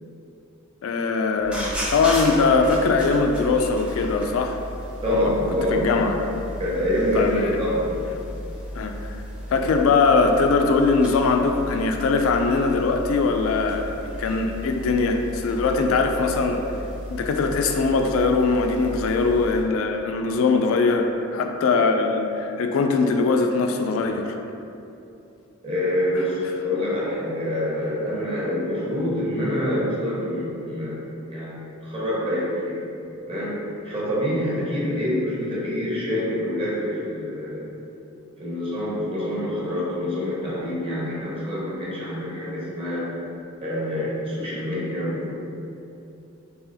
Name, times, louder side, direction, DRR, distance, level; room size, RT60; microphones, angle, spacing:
voice 1, 0.8-4.6 5.1-5.3 5.7-6.2 7.1-7.5 8.8-8.9 9.5-16.6 17.1-24.4, left 4 dB, 85° left, 4 dB, 0.3 m, -21 dB
sound 1, 1.4-19.6, equal, 5° right, 0.6 m, -34 dB
voice 2, 5.0-6.0 6.6-7.9 25.6-31.0 31.3-32.8 33.3-33.6 33.8-37.7 38.4-43.1 43.6-45.3, left 1 dB, 30° right, -7 dB, 1.1 m, -26 dB
4.7 x 3.3 x 2.7 m, 2.8 s
head